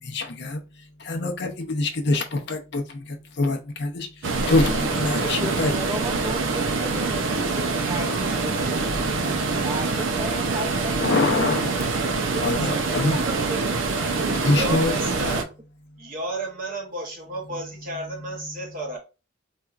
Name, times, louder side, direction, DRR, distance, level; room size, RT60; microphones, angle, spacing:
voice 1, 0.0-5.7 8.0-8.5 9.0-9.6 11.0-11.9 12.4-13.2 14.4-15.0, left 2 dB, 55° left, 0.6 m, -26 dB
sound 1, 4.2-15.4, right 3 dB, 75° right, 0.5 m, -25 dB
voice 2, 5.1-9.1 9.6-11.3 12.3-14.3 14.6-14.8, right 2 dB, 15° right, 0.5 m, -35 dB
voice 3, 14.1-15.5 16.0-19.0, right 2 dB, 45° right, 0.9 m, -33 dB
4.2 x 2.3 x 2.4 m
head